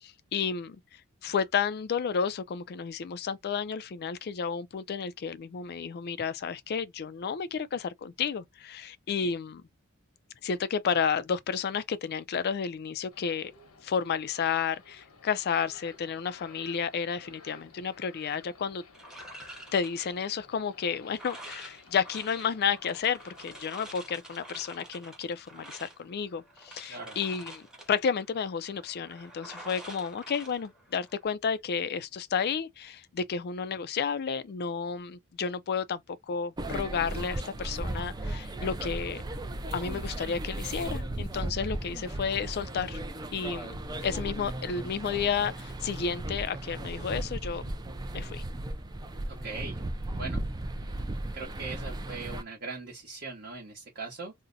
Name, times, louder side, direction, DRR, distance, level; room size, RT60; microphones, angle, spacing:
voice 1, 0.0-9.6 10.4-13.5 13.8-18.8 19.7-39.2 39.7-43.0 43.3-47.7 48.1-48.4, left 6 dB, 45° left, 0.4 m, -32 dB
sound 1, 13.1-24.2, left 4 dB, 85° left, 1.0 m, -55 dB
sound 2, 18.9-31.3, right 1 dB, 5° right, 0.8 m, -48 dB
voice 2, 26.8-27.2 49.3-49.8 50.1-50.4 50.8-51.0 51.3-54.3, right 4 dB, 45° right, 0.9 m, -40 dB
sound 3, 36.6-52.4, right 1 dB, 20° right, 0.4 m, -36 dB
2.6 x 2.1 x 3.8 m
head